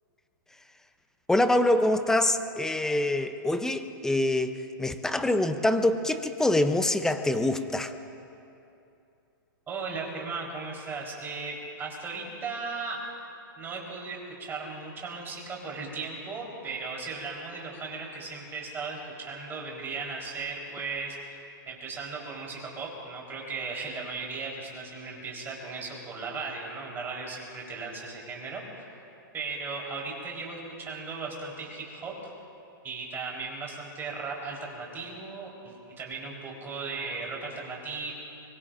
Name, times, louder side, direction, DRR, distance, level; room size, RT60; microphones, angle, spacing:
voice 1, 1.3-7.9, left 1 dB, 5° left, 9 dB, 0.6 m, -25 dB
voice 2, 9.7-13.0 13.6-29.0 29.3-32.3 32.8-38.1, right 4 dB, 20° right, -2 dB, 4.0 m, -37 dB
24.5 x 22.5 x 2.6 m, 2.7 s
hypercardioid pair, 135°, 12 cm